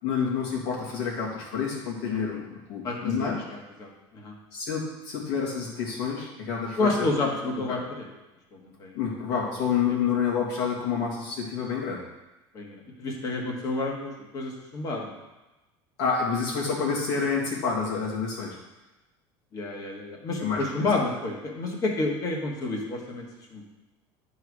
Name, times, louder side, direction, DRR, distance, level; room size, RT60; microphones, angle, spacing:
voice 1, 0.0-3.5 4.5-7.0 7.7-7.8 8.9-12.0 16.0-18.6 20.4-20.9, left 6 dB, 70° left, -3 dB, 2.7 m, -28 dB
voice 2, 2.0-2.4 2.8-3.3 3.8-4.3 6.8-8.1 8.6-8.9 12.5-15.1 19.5-23.3 23.5-23.6, left 2 dB, 35° left, 0 dB, 1.6 m, -30 dB
10.5 x 4.7 x 4.9 m, 1.0 s
cardioid pair, 155°, 11 cm